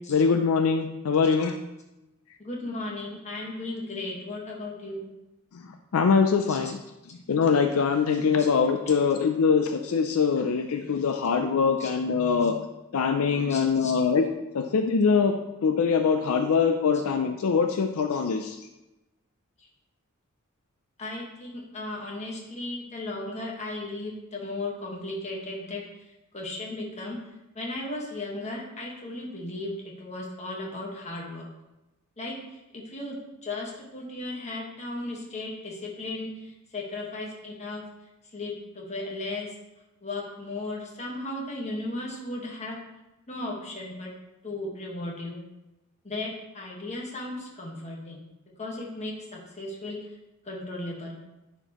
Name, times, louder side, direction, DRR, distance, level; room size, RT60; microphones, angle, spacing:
voice 1, 0.1-1.6 5.5-6.8 7.3-12.6 12.9-14.3 14.5-15.4 15.6-18.7, left 5 dB, 75° left, 6 dB, 0.4 m, -23 dB
voice 2, 2.4-5.1 6.5-6.6 11.8-11.9 13.5-13.9 21.0-25.8 26.3-27.2 27.5-29.7 30.0-31.5 32.2-33.2 33.4-37.8 38.3-39.5 40.0-42.8 43.3-44.1 44.4-45.4 46.0-48.2 48.6-50.0 50.4-51.1, left 2 dB, 30° left, -2 dB, 1.4 m, -35 dB
10.0 x 4.5 x 3.0 m, 0.98 s
head